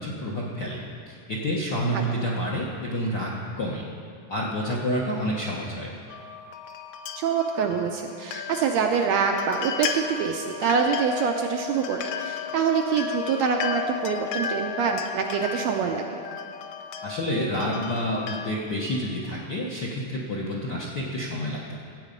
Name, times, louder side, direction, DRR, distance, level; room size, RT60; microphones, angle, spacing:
voice 1, 0.0-3.3 3.6-3.8 4.3-5.9 17.0-21.8, equal, 60° left, -4 dB, 1.1 m, -29 dB
sound 1, 6.1-18.5, left 7 dB, 75° left, 1.9 m, -34 dB
voice 2, 7.2-16.2, right 6 dB, 75° right, 3 dB, 1.7 m, -25 dB
14.5 x 8.4 x 5.2 m, 2.3 s
omnidirectional pair, 3.6 m